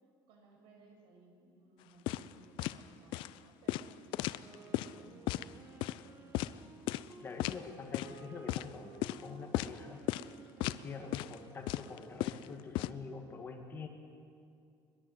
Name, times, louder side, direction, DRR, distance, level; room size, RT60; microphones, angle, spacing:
voice 1, 0.3-6.6 7.5-8.0, right 3 dB, 75° right, 2 dB, 6.2 m, -61 dB
sound 1, 2.1-2.3 2.6-2.8 3.1-3.3 3.7-4.9 5.3-5.5 5.8-6.0 6.3-6.5 6.9-7.1 7.4-7.6 7.9-8.2 8.5-8.7 9.0-9.2 9.5-9.8 10.1-10.3 10.6-10.8 11.1-11.3 11.7-12.9, left 16 dB, 70° left, 0.6 m, -35 dB
Wind instrument woodwind instrument, 4.4-12.7, right 4 dB, 25° right, 1.5 m, -56 dB
voice 2, 7.2-10.0 10.6-13.9, left 5 dB, 25° left, 3 dB, 2.0 m, -46 dB
22.0 x 21.5 x 7.9 m, 2.4 s
cardioid pair, 160°, 9 cm